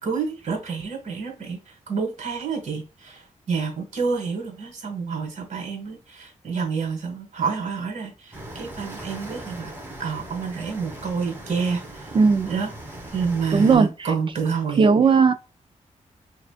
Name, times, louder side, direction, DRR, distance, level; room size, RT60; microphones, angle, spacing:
voice 1, 0.0-9.7 10.0-12.1 12.5-12.7 13.1-14.9, right 5 dB, 65° right, 1.9 m, -28 dB
sound 1, 8.3-13.8, right 1 dB, 15° right, 1.6 m, -39 dB
voice 2, 12.1-12.5 13.5-14.1 14.8-15.3, right 5 dB, 40° right, 0.4 m, -17 dB
5.9 x 2.6 x 2.4 m
wide cardioid pair, 140°, 13 cm